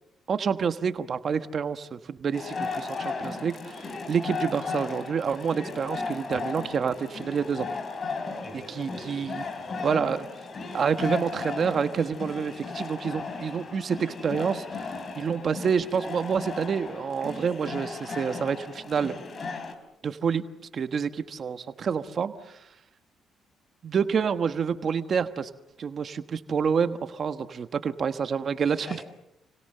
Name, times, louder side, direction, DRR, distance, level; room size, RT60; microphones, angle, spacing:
voice 1, 0.3-7.7 8.7-9.4 9.8-10.2 10.7-19.1 20.0-20.4 20.7-22.7 23.8-25.5 25.8-28.9, right 6 dB, 50° right, 10 dB, 1.3 m, -28 dB
sound 1, 2.3-19.7, left 4 dB, 40° left, 4.8 m, -36 dB
voice 2, 8.4-10.0 28.6-29.0, left 1 dB, 25° left, 9 dB, 6.6 m, -45 dB
30.0 x 25.5 x 6.8 m, 0.84 s
cardioid pair, 90°, 0 cm